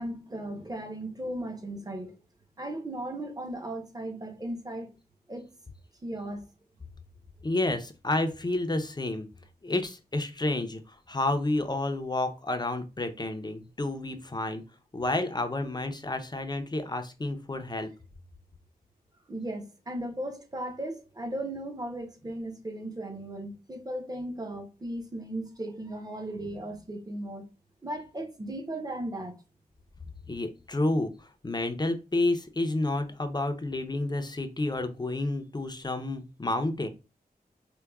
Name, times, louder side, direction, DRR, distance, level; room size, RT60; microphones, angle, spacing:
voice 1, 0.0-2.1 2.6-4.9 5.3-5.5 6.0-6.5 19.3-27.4 27.8-29.4, right 1 dB, 20° right, 0.8 m, -36 dB
voice 2, 7.4-9.3 9.6-14.6 14.9-17.9 30.3-36.9, left 2 dB, 25° left, 0.6 m, -30 dB
4.6 x 2.2 x 2.3 m
wide cardioid pair, 65°, 17 cm